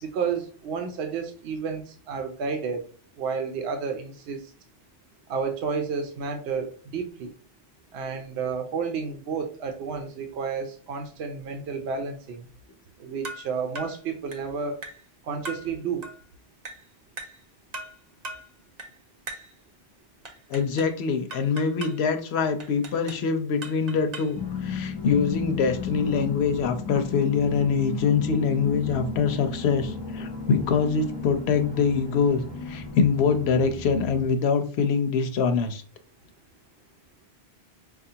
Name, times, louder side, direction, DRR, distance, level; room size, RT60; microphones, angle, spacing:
voice 1, 0.0-2.9 3.2-4.5 5.3-7.3 7.9-12.5 13.0-14.8 15.2-16.1, right 5 dB, 80° right, 5 dB, 0.9 m, -31 dB
sound 1, 13.2-13.5 13.8-14.0 14.3-14.5 14.8-15.1 15.5-15.7 16.0-16.2 16.7-16.9 17.2-17.4 17.7-18.0 18.2-18.5 18.8-19.0 19.3-19.5 20.3-21.0 21.3-22.0 22.6-23.3 23.6-24.4, right 2 dB, 45° right, 0.7 m, -39 dB
voice 2, 20.5-35.8, left 5 dB, 80° left, 7 dB, 0.9 m, -24 dB
sound 2, 24.4-34.3, left 5 dB, 30° left, 0.6 m, -34 dB
5.0 x 2.4 x 2.7 m, 0.40 s
omnidirectional pair, 1.1 m